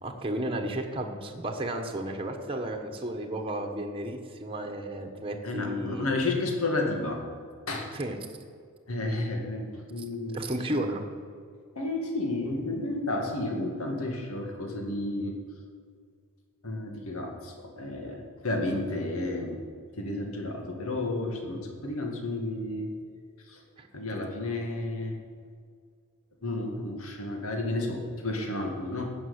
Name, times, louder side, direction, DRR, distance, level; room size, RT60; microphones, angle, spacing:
voice 1, 0.0-6.1 7.9-8.2 10.0-10.1 10.3-11.0 18.0-18.2 23.8-23.9, right 1 dB, 25° right, 4 dB, 1.2 m, -33 dB
voice 2, 5.4-7.2 7.7-7.9 8.9-10.4 11.8-15.4 16.6-19.6 19.9-22.9 23.5-23.6 23.9-25.2 26.4-29.1, left 2 dB, 75° left, 2 dB, 2.1 m, -31 dB
15.5 x 6.2 x 9.5 m, 2.1 s
head